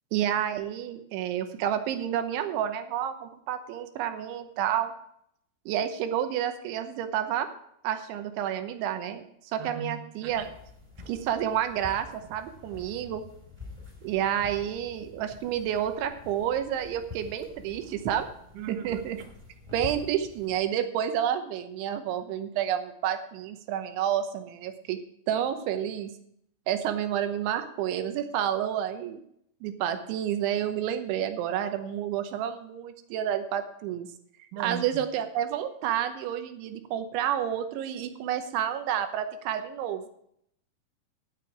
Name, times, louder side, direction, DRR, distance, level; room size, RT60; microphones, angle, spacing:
voice 1, 0.1-4.9 5.7-7.5 7.8-9.2 9.5-10.5 11.1-13.2 14.0-18.3 18.7-19.2 19.7-25.0 25.3-26.1 26.7-29.2 29.6-34.1 34.6-40.1, right 10 dB, 85° right, 8 dB, 3.4 m, -30 dB
voice 2, 9.6-10.0 18.5-19.0 34.5-35.0, right 6 dB, 65° right, 6 dB, 2.2 m, -38 dB
sound 1, 10.3-20.6, left 4 dB, 5° right, 3.3 m, -47 dB
17.5 x 6.8 x 4.7 m, 0.72 s
omnidirectional pair, 5.2 m